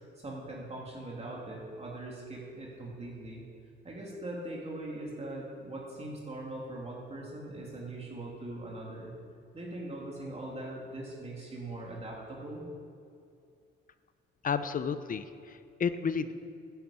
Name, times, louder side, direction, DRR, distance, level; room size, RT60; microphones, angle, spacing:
voice 1, 0.1-3.4 3.8-9.1 9.5-12.6, right 1 dB, 30° right, -3 dB, 3.1 m, -41 dB
voice 2, 14.4-16.3, left 6 dB, 45° left, 12 dB, 0.8 m, -32 dB
11.0 x 9.3 x 8.7 m, 2.4 s
cardioid pair, 90°, 20 cm